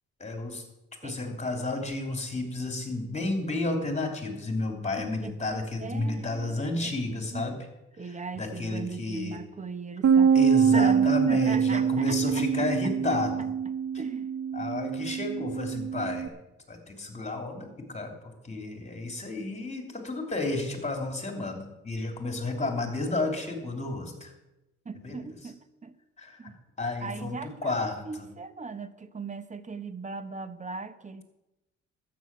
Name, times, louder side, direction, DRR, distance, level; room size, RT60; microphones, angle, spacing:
voice 1, 0.2-0.6 1.0-7.5 8.1-9.4 10.3-13.5 14.5-16.3 16.7-18.1 18.4-24.3 24.9-25.2 26.2-26.5 26.8-28.2, left 2 dB, 20° left, 3 dB, 3.1 m, -32 dB
voice 2, 1.0-1.4 5.0-6.9 7.3-7.6 8.0-10.4 10.7-12.9 14.0-14.3 24.8-25.9 26.4-26.6 27.0-31.2, right 4 dB, 25° right, 12 dB, 1.0 m, -39 dB
Bass guitar, 10.0-16.3, right 7 dB, 55° right, 0.8 m, -24 dB
12.5 x 8.8 x 7.2 m, 0.96 s
cardioid pair, 90°, 30 cm